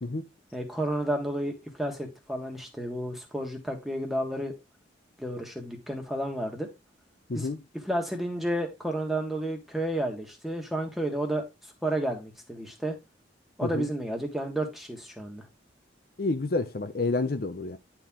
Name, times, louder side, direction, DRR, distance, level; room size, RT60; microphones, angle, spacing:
voice 1, 0.5-4.5 5.2-6.7 7.3-7.5 7.8-11.4 11.8-13.0 13.6-15.4, right 1 dB, ahead, 1.6 m, -31 dB
voice 2, 7.3-7.6 13.6-13.9 16.2-17.8, left 3 dB, 50° left, 0.6 m, -29 dB
10.0 x 4.5 x 3.7 m
head